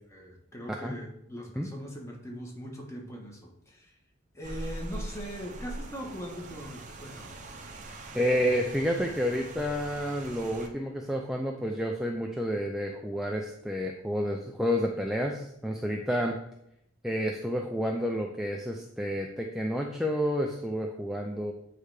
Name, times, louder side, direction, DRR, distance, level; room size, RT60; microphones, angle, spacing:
voice 1, 0.1-4.0 4.3-7.4, equal, 15° left, -1 dB, 1.3 m, -41 dB
Rain, 4.4-10.7, right 1 dB, 40° right, 0.8 m, -42 dB
voice 2, 8.1-16.4 17.0-21.5, equal, ahead, 1 dB, 0.5 m, -30 dB
8.5 x 3.3 x 4.9 m, 0.78 s
head